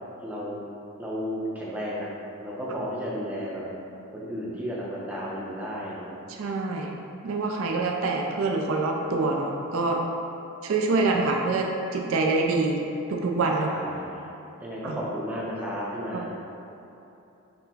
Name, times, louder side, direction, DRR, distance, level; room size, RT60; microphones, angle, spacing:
voice 1, 0.2-0.7 1.0-2.1 2.4-3.6 4.1-6.1 13.6-14.3 14.6-16.3, equal, 5° right, -7 dB, 0.5 m, -33 dB
voice 2, 6.3-6.9 7.2-10.0 10.6-12.8 13.1-13.7 14.8-15.0 16.1-16.3, right 3 dB, 65° right, 1 dB, 0.4 m, -26 dB
4.3 x 2.0 x 4.0 m, 2.9 s
head